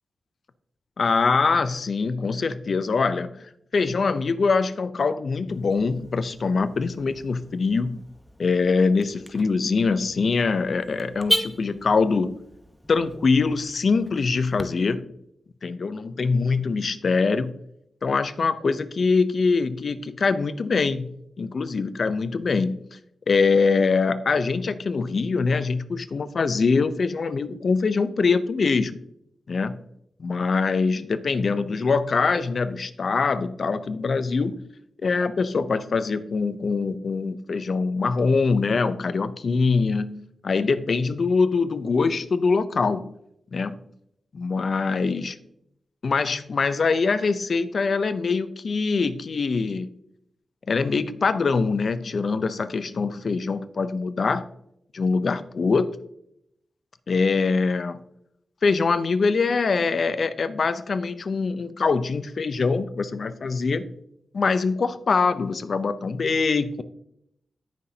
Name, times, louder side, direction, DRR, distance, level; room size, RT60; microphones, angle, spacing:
voice 1, 1.0-8.0 8.4-12.4 12.9-15.1 15.6-17.6 18.0-21.1 21.4-23.0 23.3-28.9 29.5-29.8 30.2-34.6 35.0-43.2 43.5-43.8 44.3-45.3 46.0-49.9 50.7-54.5 54.9-55.9 57.1-58.0 58.6-63.9 64.3-66.8, left 4 dB, 65° left, 13 dB, 0.6 m, -23 dB
Car / Alarm, 5.5-14.6, equal, 5° left, 0.9 m, -35 dB
17.5 x 5.9 x 2.8 m, 0.77 s
cardioid pair, 50°, 0 cm